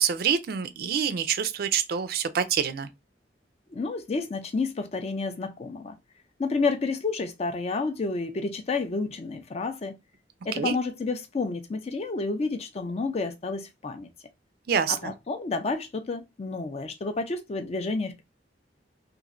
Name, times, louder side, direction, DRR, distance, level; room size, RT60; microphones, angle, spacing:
voice 1, 0.0-2.9 10.5-10.7 14.7-15.1, right 7 dB, 55° right, 0.4 m, -26 dB
voice 2, 3.7-5.9 6.4-9.9 10.4-14.1 14.9-18.2, left 3 dB, 35° left, 0.4 m, -30 dB
3.0 x 2.5 x 2.4 m
head